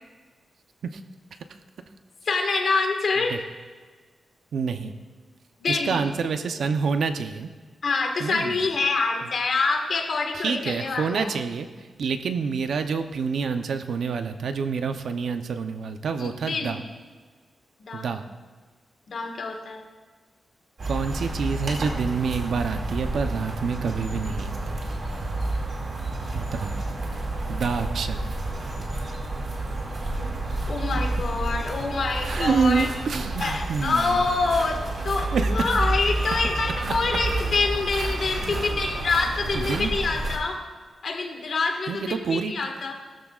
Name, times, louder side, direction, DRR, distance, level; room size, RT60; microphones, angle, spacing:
voice 1, 2.2-3.4 5.6-6.0 7.8-11.3 16.2-16.8 17.9-18.1 19.1-19.8 30.2-30.3 30.7-32.9 33.4-34.8 35.0-40.6 41.0-42.9, left 4 dB, 50° left, 3 dB, 1.7 m, -26 dB
voice 2, 4.5-4.9 5.7-7.5 8.2-8.6 10.3-16.8 17.9-18.2 20.8-24.8 26.3-26.7 27.5-28.2 32.1-34.3 35.3-35.7 38.1-38.6 39.5-39.9 41.9-42.5, right 5 dB, 70° right, 7 dB, 0.7 m, -27 dB
sound 1, 20.8-40.4, right 2 dB, 45° right, 2.3 m, -30 dB
19.0 x 13.5 x 2.5 m, 1.5 s
wide cardioid pair, 170°, 0 cm